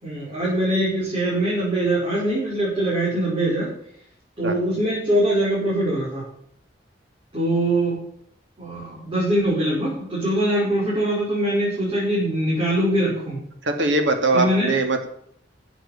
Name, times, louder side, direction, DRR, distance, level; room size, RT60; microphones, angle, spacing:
voice 1, 0.0-3.7 4.4-6.2 7.3-8.0 8.6-13.4 14.3-14.7, right 1 dB, 30° right, -7 dB, 5.4 m, -22 dB
voice 2, 13.6-15.1, right 2 dB, 85° right, 5 dB, 2.4 m, -21 dB
13.0 x 8.1 x 7.5 m, 0.70 s
head